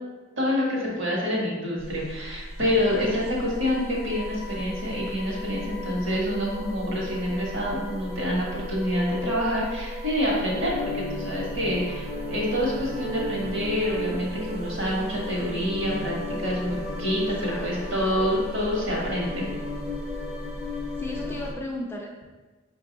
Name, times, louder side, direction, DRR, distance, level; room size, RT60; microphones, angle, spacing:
voice 1, 0.4-19.5, equal, 60° right, -4 dB, 1.3 m, -27 dB
sound 1, 1.8-21.5, left 1 dB, 30° right, 0.6 m, -34 dB
voice 2, 3.1-3.4 17.2-18.0 20.7-22.2, left 1 dB, 10° left, -1 dB, 0.3 m, -38 dB
5.0 x 2.6 x 3.8 m, 1.3 s
head